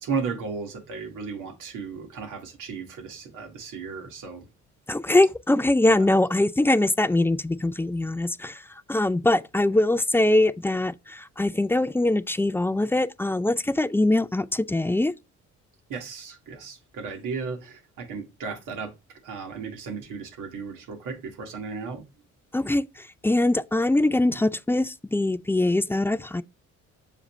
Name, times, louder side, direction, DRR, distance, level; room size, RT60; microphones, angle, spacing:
voice 1, 0.0-4.5 5.9-6.1 15.9-18.9 19.2-22.0, right 5 dB, 85° right, 2.0 m, -35 dB
voice 2, 4.9-8.6 8.9-15.1 22.5-22.8 23.2-26.4, left 2 dB, 10° left, 0.3 m, -22 dB
6.8 x 4.9 x 3.1 m
cardioid pair, 90°, 30 cm